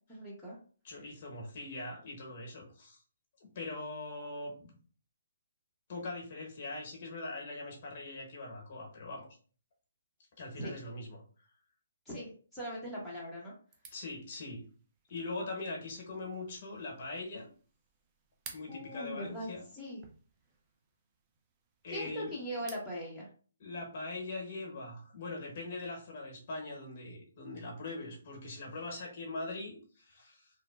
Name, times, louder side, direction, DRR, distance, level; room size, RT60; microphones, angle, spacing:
voice 1, 0.1-0.6 10.6-10.7 12.1-13.5 18.7-19.5 19.7-20.0 21.9-23.3, equal, 5° left, -8 dB, 0.9 m, -40 dB
voice 2, 0.8-3.0 3.4-4.8 5.9-9.3 10.4-11.2 13.9-14.6 15.1-17.5 18.5-19.6 21.8-22.4 23.6-30.5, left 2 dB, 45° left, 0 dB, 1.0 m, -41 dB
sound 1, 13.7-23.0, right 5 dB, 20° right, 0.4 m, -57 dB
2.8 x 2.2 x 2.3 m, 0.41 s
figure-of-eight pair, 140°, 0 cm